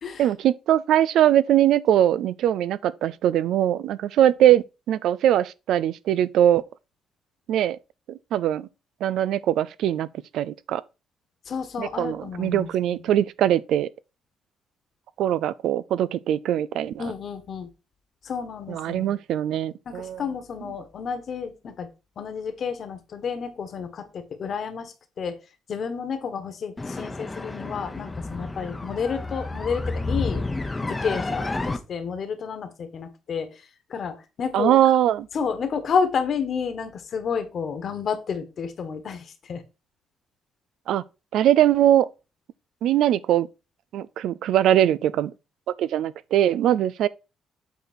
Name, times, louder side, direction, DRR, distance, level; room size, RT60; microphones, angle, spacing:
voice 1, 0.2-6.6 7.5-7.8 8.1-8.7 9.0-10.1 10.3-10.8 11.8-13.9 15.2-17.0 18.7-20.2 34.5-35.3 40.9-41.0 41.3-42.1 42.8-43.5 43.9-45.3 45.8-47.1, right 11 dB, 80° right, 0.4 m, -21 dB
voice 2, 11.5-12.7 17.0-17.7 18.2-19.1 19.8-21.9 22.2-25.4 25.7-30.4 30.8-33.6 33.9-34.8 35.3-39.6, left 6 dB, 55° left, 1.5 m, -30 dB
sound 1, 26.8-31.8, left 2 dB, 20° left, 0.8 m, -30 dB
8.3 x 4.1 x 4.3 m
cardioid pair, 90°, 0 cm